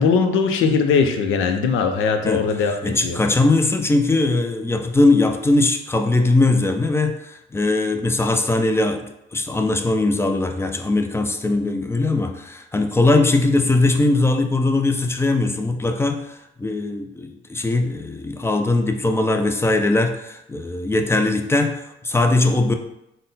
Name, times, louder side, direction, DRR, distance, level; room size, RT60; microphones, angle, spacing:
voice 1, 0.0-3.2, left 5 dB, 85° left, 6 dB, 0.5 m, -20 dB
voice 2, 2.8-22.7, left 2 dB, 10° left, 6 dB, 0.4 m, -20 dB
3.8 x 2.1 x 3.9 m, 0.84 s
cardioid pair, 90°, 20 cm